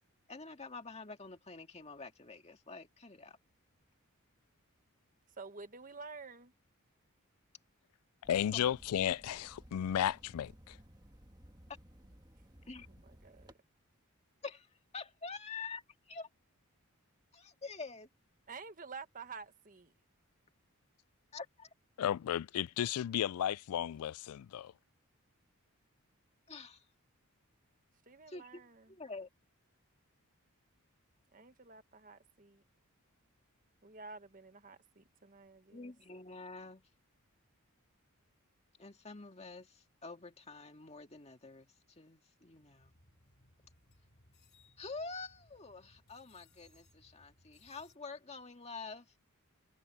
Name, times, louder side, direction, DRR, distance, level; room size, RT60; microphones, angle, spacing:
voice 1, 0.3-3.4 8.5-8.7 12.7-12.9 14.4-14.7 14.9-16.3 17.3-18.1 21.3-21.4 26.5-26.8 28.3-28.6 28.9-29.3 35.7-36.8 38.8-42.9 44.8-49.1, left 4 dB, 30° left, 2.0 m, -47 dB
voice 2, 5.4-6.5 12.9-13.5 18.5-19.9 28.0-28.9 31.3-32.6 33.8-35.9, right 4 dB, 35° right, 1.5 m, -50 dB
voice 3, 8.2-10.8 22.0-24.7, left 10 dB, 80° left, 0.3 m, -34 dB
sound 1, 8.2-13.5, equal, 20° right, 1.7 m, -58 dB
sound 2, 42.4-48.0, left 2 dB, 45° left, 3.5 m, -67 dB
head